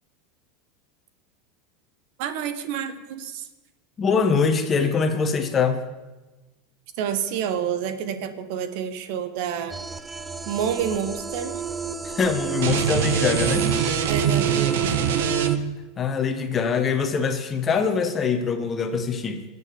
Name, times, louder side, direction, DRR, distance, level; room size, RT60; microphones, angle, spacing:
voice 1, 2.2-3.5 7.0-9.8 10.4-11.6 14.1-15.1, right 8 dB, 60° right, 10 dB, 1.5 m, -29 dB
voice 2, 4.0-5.8 12.0-13.7 16.0-19.4, left 5 dB, 25° left, 7 dB, 1.5 m, -23 dB
sound 1, 9.7-15.6, right 6 dB, 10° right, 0.7 m, -29 dB
sound 2, 12.6-15.8, right 8 dB, 85° right, 1.4 m, -24 dB
24.0 x 8.4 x 7.1 m, 1.1 s
supercardioid pair, 140°, 0 cm